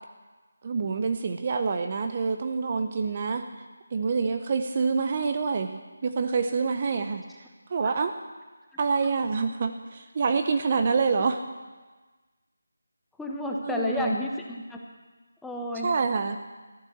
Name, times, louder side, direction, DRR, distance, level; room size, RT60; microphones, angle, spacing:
voice 1, 0.6-3.4 3.9-7.2 7.7-8.1 8.8-11.4 13.6-14.2 15.8-16.4, right 5 dB, 35° right, 7 dB, 0.7 m, -26 dB
voice 2, 13.2-14.8 15.4-15.9, left 1 dB, 5° left, -1 dB, 1.1 m, -31 dB
14.5 x 9.1 x 7.3 m, 1.3 s
figure-of-eight pair, 160°, 0 cm